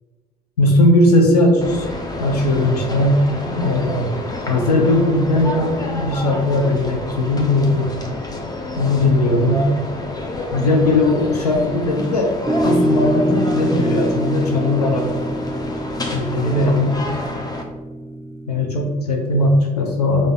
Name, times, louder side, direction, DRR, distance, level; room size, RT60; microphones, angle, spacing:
voice 1, 0.6-1.9 2.2-4.1 4.5-7.9 8.8-9.8 10.5-12.3 12.6-15.1 16.1-16.9 18.5-20.3, left 1 dB, 90° left, 1 dB, 0.6 m, -18 dB
sound 1, 1.6-17.6, left 2 dB, 20° left, 0.8 m, -29 dB
sound 2, 12.5-18.9, equal, 10° right, 0.4 m, -24 dB
5.3 x 2.6 x 3.5 m, 1.3 s
hypercardioid pair, 55°, 19 cm